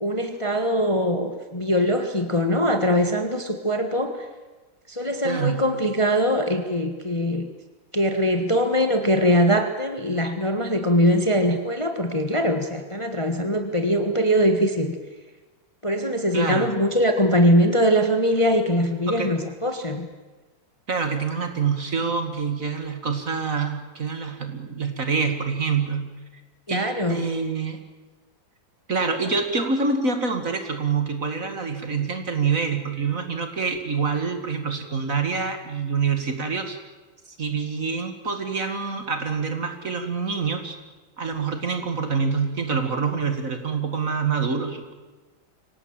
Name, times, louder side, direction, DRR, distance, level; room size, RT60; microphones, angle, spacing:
voice 1, 0.0-4.3 4.9-7.5 7.9-14.9 15.8-20.1 26.7-27.2, equal, 15° left, 6 dB, 1.5 m, -22 dB
voice 2, 5.2-5.6 16.3-16.7 19.1-19.3 20.9-26.1 26.7-27.8 28.9-36.8 37.4-40.8 41.2-44.9, right 5 dB, 40° right, 7 dB, 2.4 m, -26 dB
25.0 x 18.0 x 9.0 m, 1.3 s
omnidirectional pair, 2.1 m